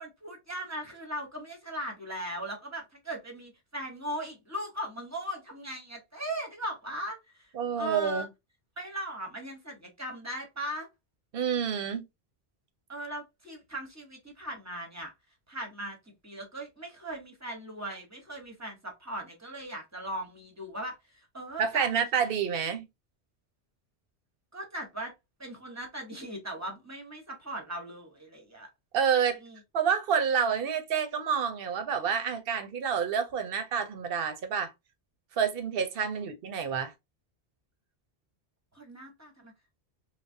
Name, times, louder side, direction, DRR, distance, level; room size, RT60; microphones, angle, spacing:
voice 1, 0.0-7.5 7.8-8.3 8.8-10.9 12.9-15.1 15.5-16.0 16.2-22.0 24.5-25.1 25.4-28.7 29.4-29.6 36.1-36.2 38.7-39.5, right 1 dB, 15° right, 0.9 m, -39 dB
voice 2, 7.5-8.3 11.3-12.1 21.6-22.9 28.9-29.4 29.7-34.7 35.4-36.9, right 7 dB, 65° right, 0.8 m, -28 dB
3.3 x 2.1 x 2.6 m
omnidirectional pair, 1.1 m